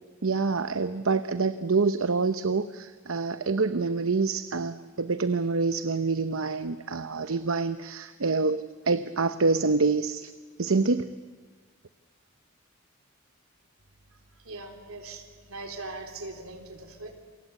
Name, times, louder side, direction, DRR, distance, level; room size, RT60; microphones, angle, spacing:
voice 1, 0.2-10.3 10.6-11.1, right 4 dB, 70° right, 12 dB, 0.8 m, -26 dB
voice 2, 14.4-17.2, right 2 dB, 90° right, 5 dB, 3.6 m, -40 dB
28.5 x 24.0 x 8.2 m, 1.4 s
head